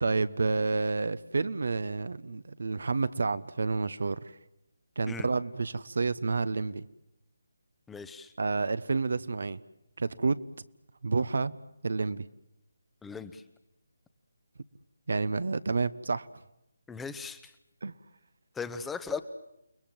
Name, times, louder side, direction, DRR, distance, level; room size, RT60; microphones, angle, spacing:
voice 1, 0.0-4.2 5.0-6.8 8.4-9.6 10.0-10.4 11.0-11.5 11.8-12.2 15.1-16.3 17.8-17.9, right 3 dB, 60° right, 15 dB, 0.9 m, -29 dB
voice 2, 7.9-8.3 13.0-13.4 16.9-17.5 18.5-19.2, left 5 dB, 5° left, 11 dB, 0.9 m, -38 dB
29.5 x 20.0 x 7.7 m, 0.85 s
figure-of-eight pair, 155°, 0 cm